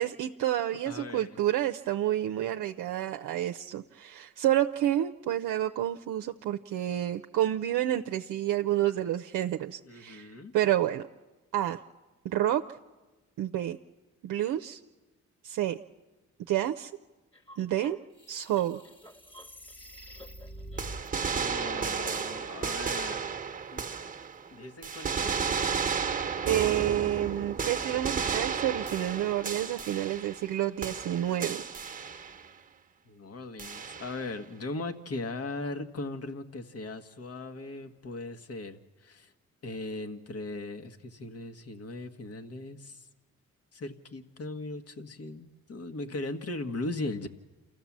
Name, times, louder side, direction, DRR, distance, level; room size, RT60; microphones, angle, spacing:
voice 1, 0.0-11.0 11.5-11.8 12.2-12.6 13.4-13.8 14.2-14.8 15.4-15.8 16.5-16.9 17.6-18.0 18.3-18.8 26.4-31.6, right 12 dB, 80° right, 4 dB, 0.6 m, -29 dB
voice 2, 0.8-1.4 9.8-10.5 21.3-23.2 23.7-23.9 24.5-25.5 33.1-39.3 39.6-43.1 43.7-47.3, left 2 dB, 50° left, 7 dB, 1.6 m, -38 dB
sound 1, 17.3-21.1, equal, 15° left, 1.6 m, -46 dB
sound 2, 20.8-24.5 24.8-30.5 30.8-32.5 33.6-34.3, right 6 dB, 25° right, 1.2 m, -33 dB
28.0 x 14.5 x 7.4 m, 1.2 s
cardioid pair, 75°, 31 cm